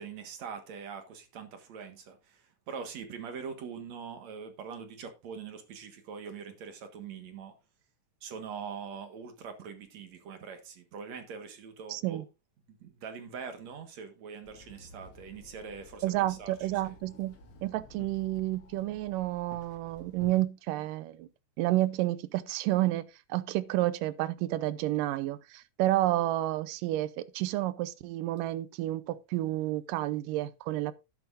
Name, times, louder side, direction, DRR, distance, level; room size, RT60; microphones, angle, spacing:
voice 1, 0.0-7.5 8.2-12.2 12.8-16.5 16.8-16.9, right 6 dB, 60° right, 2.6 m, -43 dB
voice 2, 11.9-12.2 16.0-17.4 17.6-21.3 21.6-23.0 23.3-30.9, right 16 dB, 90° right, 2.4 m, -30 dB
Walk footsteps / Chatter / Hiss, 14.4-20.4, left 3 dB, 45° left, 2.5 m, -53 dB
12.0 x 10.5 x 2.6 m
omnidirectional pair, 3.7 m